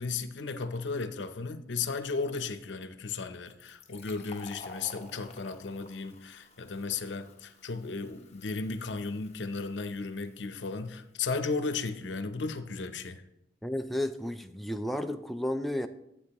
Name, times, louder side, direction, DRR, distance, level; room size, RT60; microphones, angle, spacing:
voice 1, 0.0-13.2, left 4 dB, 85° left, 10 dB, 0.7 m, -35 dB
Fill (with liquid), 3.5-10.8, left 4 dB, 35° left, 1.0 m, -52 dB
voice 2, 13.6-15.9, left 1 dB, ahead, 6 dB, 0.3 m, -32 dB
12.0 x 8.5 x 3.0 m, 0.85 s
head